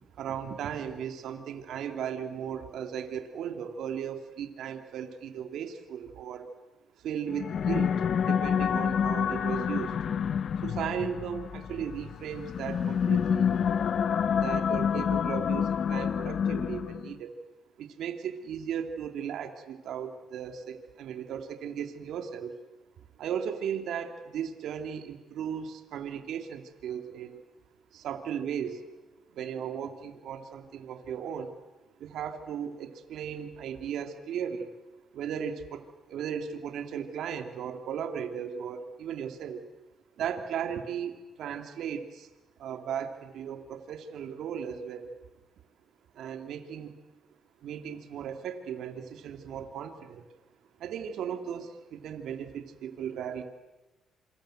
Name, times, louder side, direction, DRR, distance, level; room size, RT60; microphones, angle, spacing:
voice 1, 0.0-6.5 7.0-8.0 8.2-9.9 10.6-13.9 14.4-17.4 17.8-22.5 23.2-27.4 27.9-28.8 29.3-31.5 32.0-34.7 35.1-39.6 40.2-42.3 42.6-45.1 46.1-46.9 47.6-50.3 50.8-53.4, right 8 dB, 75° right, 6 dB, 2.7 m, -36 dB
sound 1, 7.3-17.1, left 7 dB, 60° left, 0.9 m, -28 dB
27.5 x 25.0 x 7.9 m, 1.1 s
cardioid pair, 90°, 0 cm